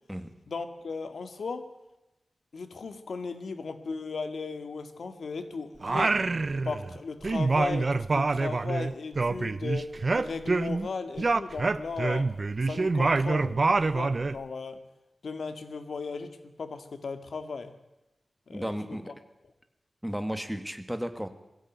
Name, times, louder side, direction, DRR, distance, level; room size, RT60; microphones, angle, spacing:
voice 1, 0.5-1.7 2.5-6.2 6.6-12.3 12.6-14.8 15.2-17.8 18.5-19.0, left 4 dB, 80° left, 8 dB, 2.1 m, -36 dB
Singing, 5.8-7.0 7.2-10.9 11.2-14.4, right 3 dB, 45° right, 0.8 m, -26 dB
voice 2, 18.5-19.1 20.0-21.3, equal, 5° right, 8 dB, 2.0 m, -34 dB
21.0 x 16.0 x 9.4 m, 0.94 s
wide cardioid pair, 100°, 0 cm